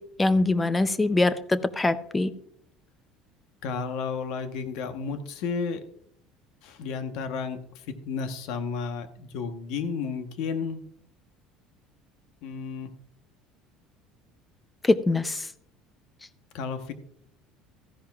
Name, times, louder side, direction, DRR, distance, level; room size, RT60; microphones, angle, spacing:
voice 1, 0.2-2.3 14.8-15.4, left 2 dB, 10° left, 14 dB, 0.4 m, -23 dB
voice 2, 3.6-5.9 6.6-10.8 12.4-12.9 16.5-16.9, left 5 dB, 60° left, 8 dB, 1.0 m, -32 dB
14.5 x 10.5 x 2.3 m, 0.69 s
cardioid pair, 180°, 0 cm